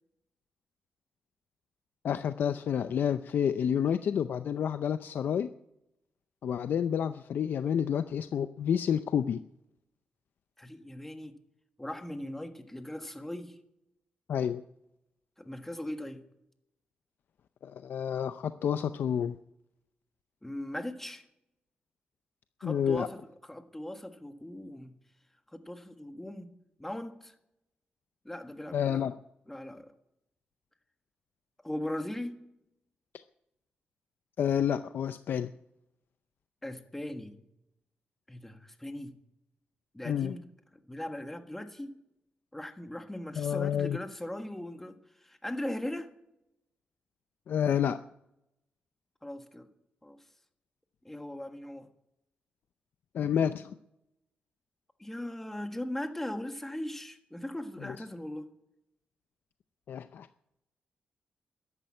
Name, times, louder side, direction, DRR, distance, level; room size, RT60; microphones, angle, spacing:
voice 1, 2.0-5.5 6.4-9.4 14.3-14.6 17.6-19.4 22.6-23.1 28.7-29.1 34.4-35.5 40.0-40.3 43.4-44.0 47.5-48.0 53.1-53.8 59.9-60.3, left 8 dB, 70° left, 11 dB, 0.5 m, -29 dB
voice 2, 10.6-11.3 11.8-13.6 15.4-16.2 20.4-21.3 22.6-24.9 25.5-26.5 26.8-27.3 28.2-29.1 29.5-29.9 31.6-32.4 36.6-37.4 38.3-39.2 39.9-40.4 40.7-41.9 42.5-46.1 49.2-49.7 50.0-50.2 51.0-51.9 55.0-58.5, left 1 dB, 10° left, 7 dB, 1.5 m, -39 dB
13.5 x 11.0 x 8.7 m, 0.84 s
wide cardioid pair, 125°, 4 cm